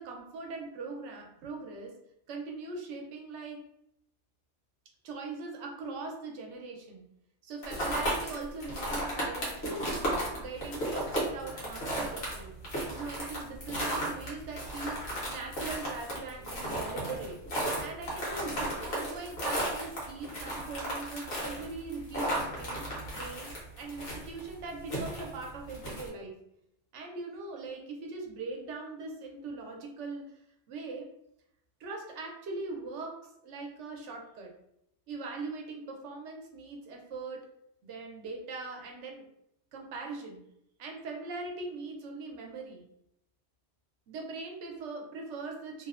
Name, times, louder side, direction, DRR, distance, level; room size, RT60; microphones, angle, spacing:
voice 1, 0.0-1.9 2.3-3.6 5.0-7.0 7.4-10.0 10.4-17.4 17.8-22.8 23.1-26.3 26.9-30.4 30.7-31.1 31.8-33.2 33.4-34.5 35.1-37.4 37.8-39.2 39.7-40.4 40.8-42.8 44.1-45.9, right 3 dB, 80° right, 2 dB, 0.9 m, -41 dB
sound 1, 7.6-26.1, right 1 dB, 65° left, 1.1 m, -34 dB
2.7 x 2.0 x 2.3 m, 0.78 s
omnidirectional pair, 1.2 m